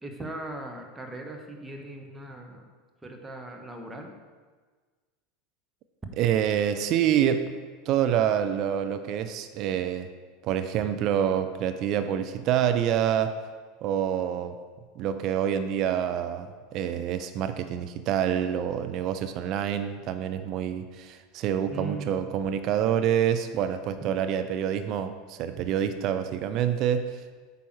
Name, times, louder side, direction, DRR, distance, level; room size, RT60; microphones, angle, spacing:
voice 1, 0.0-2.7 3.0-4.1 21.7-22.1, right 2 dB, 10° right, 2 dB, 1.3 m, -39 dB
voice 2, 6.2-7.5 7.9-10.1 10.4-13.4 13.8-14.6 15.0-27.2, right 9 dB, 45° right, 9 dB, 0.5 m, -27 dB
8.9 x 5.4 x 4.6 m, 1.4 s
figure-of-eight pair, 80°, 0 cm